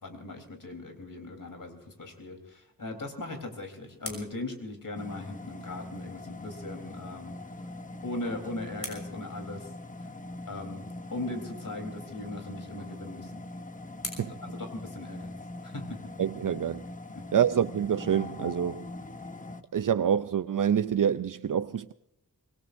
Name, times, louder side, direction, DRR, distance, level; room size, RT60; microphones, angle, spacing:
voice 1, 0.0-7.4 8.0-9.7 10.5-13.4 14.5-15.3 15.6-16.0 17.1-17.2, left 2 dB, 65° left, 3.8 m, -39 dB
sound 1, 3.1-5.6 7.7-10.2 12.4-15.5, left 1 dB, 40° left, 6.0 m, -47 dB
sound 2, 5.0-19.6, left 2 dB, 25° left, 0.9 m, -42 dB
voice 2, 16.2-16.8 17.3-18.9 19.7-21.9, right 8 dB, 65° right, 0.5 m, -26 dB
25.0 x 20.5 x 2.6 m
wide cardioid pair, 80°, 35 cm